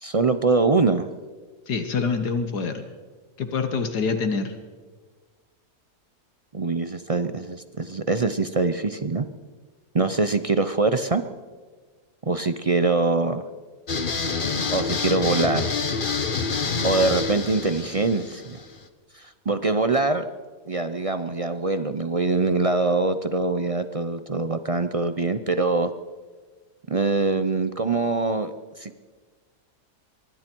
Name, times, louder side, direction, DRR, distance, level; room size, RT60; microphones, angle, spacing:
voice 1, 0.0-1.1 6.5-9.3 9.9-11.2 12.3-13.4 14.7-15.8 16.8-18.6 19.1-20.3 20.7-25.9 26.9-29.1, right 3 dB, 45° right, 10 dB, 0.4 m, -23 dB
voice 2, 1.7-2.8 3.4-4.6, left 5 dB, 80° left, 7 dB, 1.8 m, -26 dB
sound 1, 13.9-18.8, left 5 dB, 35° left, 1.2 m, -27 dB
25.0 x 23.0 x 4.6 m, 1.4 s
omnidirectional pair, 1.7 m